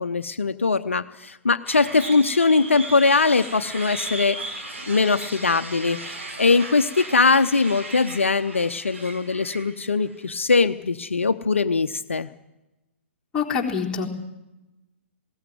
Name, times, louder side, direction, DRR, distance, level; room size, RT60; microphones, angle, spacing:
voice 1, 0.0-4.4 4.9-12.3, left 4 dB, 70° left, 9 dB, 0.9 m, -21 dB
sound 1, 1.7-10.3, right 2 dB, 70° right, 4.8 m, -36 dB
voice 2, 13.3-14.1, left 6 dB, 10° left, -3 dB, 3.8 m, -25 dB
20.0 x 17.0 x 9.4 m, 1.0 s
figure-of-eight pair, 120°, 7 cm